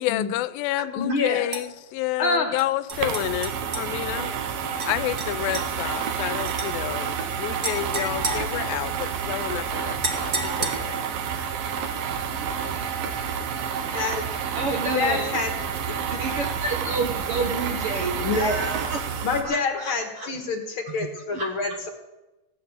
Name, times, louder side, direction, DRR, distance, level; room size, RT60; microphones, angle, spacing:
voice 1, 0.0-4.3 4.8-11.0 12.3-12.4, left 16 dB, 90° left, 16 dB, 2.4 m, -29 dB
voice 2, 0.9-1.5 2.2-2.6 13.9-14.2 14.9-15.5 15.9-16.0 18.2-18.7 19.2-21.9, left 3 dB, 55° left, 5 dB, 1.6 m, -26 dB
sound 1, 1.5-1.7 2.6-3.9 4.8-4.9 5.2-5.7 6.5-6.7 7.6-9.1 10.0-11.1, right 2 dB, 45° right, 1.1 m, -32 dB
sound 2, 2.9-19.4, right 7 dB, 85° right, 3.0 m, -29 dB
voice 3, 14.5-15.3 16.1-19.0 19.4-20.3 21.3-21.5, right 3 dB, 65° right, 3 dB, 1.4 m, -29 dB
15.5 x 9.5 x 7.3 m, 1.0 s
omnidirectional pair, 4.0 m